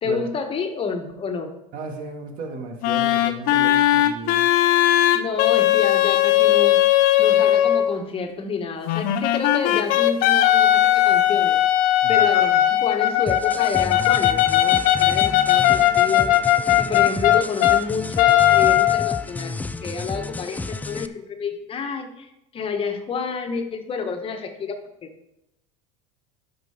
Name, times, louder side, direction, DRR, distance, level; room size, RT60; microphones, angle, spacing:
voice 1, 0.0-1.5 5.1-11.6 12.1-16.3 16.8-19.5 19.8-25.1, left 5 dB, 35° left, 5 dB, 1.5 m, -29 dB
voice 2, 1.7-4.5 12.0-12.3, right 3 dB, 55° right, 3 dB, 2.2 m, -35 dB
sound 1, 2.8-7.9 8.8-17.8 18.2-19.2, left 13 dB, 60° left, 0.8 m, -18 dB
sound 2, 13.3-21.1, left 3 dB, 10° left, 0.5 m, -32 dB
12.0 x 5.4 x 5.0 m, 0.86 s
supercardioid pair, 100°, 17 cm